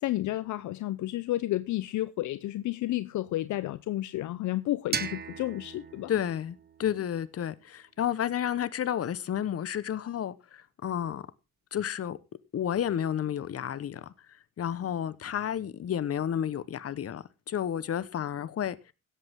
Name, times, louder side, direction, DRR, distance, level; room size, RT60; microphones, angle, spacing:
voice 1, 0.0-6.1, left 15 dB, 75° left, 0.6 m, -31 dB
sound 1, 4.9-7.8, right 6 dB, 30° right, 1.4 m, -38 dB
voice 2, 6.1-11.3 11.7-12.2 12.5-14.0 14.6-18.9, left 9 dB, 50° left, 1.1 m, -31 dB
16.5 x 8.3 x 3.6 m
cardioid pair, 90°, 30 cm